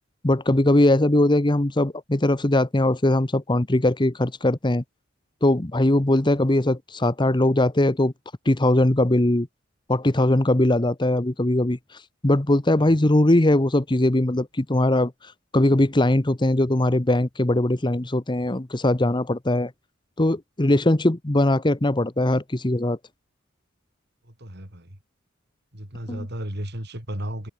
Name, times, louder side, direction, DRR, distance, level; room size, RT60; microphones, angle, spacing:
voice 1, 0.2-4.8 5.4-8.1 8.4-9.5 9.9-11.8 12.2-15.1 15.5-19.7 20.2-23.0 26.1-26.3, left 1 dB, 25° left, 1.0 m, -20 dB
voice 2, 24.2-25.0 25.7-27.5, equal, 55° right, 6.9 m, -34 dB
head